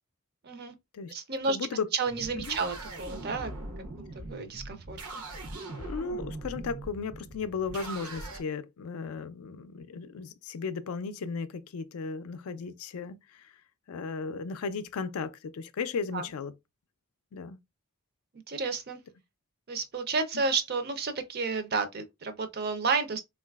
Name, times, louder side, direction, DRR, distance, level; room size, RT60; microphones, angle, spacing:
voice 1, 0.4-0.7 1.1-1.6 1.9-3.5 4.1-5.2 16.1-16.2 18.5-19.0 19.7-23.2, right 4 dB, 45° right, 0.5 m, -31 dB
voice 2, 1.5-1.9 2.4-2.6 5.7-13.5 13.9-16.5 17.3-17.6, left 5 dB, 75° left, 0.4 m, -35 dB
sound 1, 2.0-8.4, right 2 dB, 80° right, 0.8 m, -41 dB
3.8 x 2.3 x 2.3 m
head